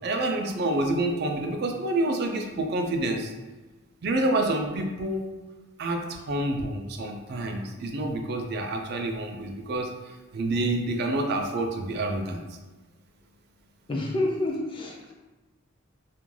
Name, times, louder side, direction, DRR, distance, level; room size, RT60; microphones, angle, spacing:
voice 1, 0.0-3.3 4.0-5.3 5.8-9.9 10.3-12.4, right 2 dB, 50° right, 3 dB, 0.4 m, -28 dB
voice 2, 13.9-15.1, left 1 dB, 25° left, -1 dB, 0.4 m, -28 dB
2.4 x 2.2 x 3.1 m, 1.2 s
head